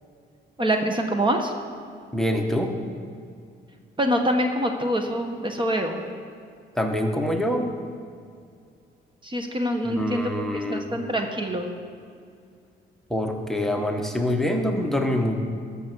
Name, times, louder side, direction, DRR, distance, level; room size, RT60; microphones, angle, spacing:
voice 1, 0.6-1.5 4.0-6.1 9.2-10.3 10.7-11.7, equal, 25° right, 4 dB, 1.2 m, -25 dB
voice 2, 2.1-2.7 6.8-7.8 9.9-11.0 13.1-15.4, left 1 dB, ahead, 3 dB, 1.2 m, -25 dB
14.0 x 6.8 x 6.2 m, 2.3 s
cardioid pair, 90°, 20 cm